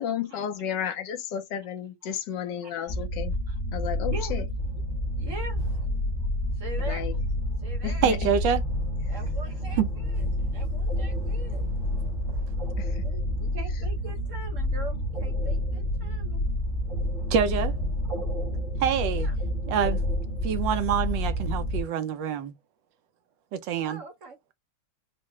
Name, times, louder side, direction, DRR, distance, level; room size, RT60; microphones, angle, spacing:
voice 1, 0.0-3.3 3.7-4.4 6.9-7.1 7.8-8.2 12.8-13.0, left 9 dB, 75° left, 1.2 m, -32 dB
voice 2, 2.6-2.9 3.5-3.6 4.1-4.4 5.2-5.6 6.5-7.1 7.6-8.1 9.1-11.7 13.0-16.4 19.1-19.3 23.8-24.5, right 3 dB, 55° right, 0.9 m, -42 dB
sound 1, 2.9-21.8, left 1 dB, 45° left, 0.6 m, -29 dB
sound 2, 4.6-21.7, right 2 dB, 30° right, 1.1 m, -44 dB
voice 3, 8.0-8.6 9.8-9.9 17.3-17.7 18.8-19.3 19.7-20.0 20.4-22.5 23.5-24.0, right 7 dB, 75° right, 1.3 m, -26 dB
4.6 x 2.1 x 3.0 m
omnidirectional pair, 2.1 m